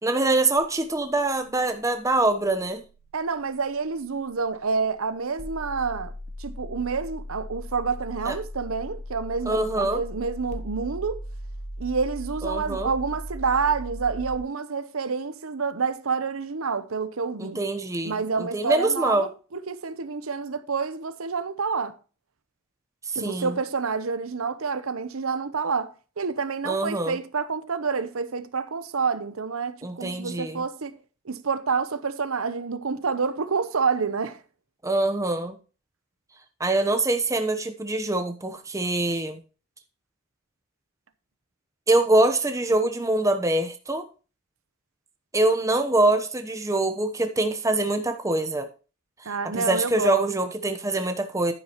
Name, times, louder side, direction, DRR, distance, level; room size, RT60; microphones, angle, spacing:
voice 1, 0.0-2.8 8.3-8.4 9.5-10.0 12.4-12.9 17.4-19.3 23.1-23.6 26.6-27.2 29.8-30.6 34.8-35.6 36.6-39.4 41.9-44.0 45.3-48.7 49.5-51.5, right 2 dB, 15° right, 0.9 m, -24 dB
sound 1, 0.6-14.4, equal, 30° left, 1.4 m, -39 dB
voice 2, 3.1-6.1 6.4-11.2 11.8-17.6 18.0-22.0 23.1-30.9 31.2-34.4 49.2-50.3, right 5 dB, 70° right, 0.8 m, -28 dB
11.0 x 9.8 x 3.0 m
head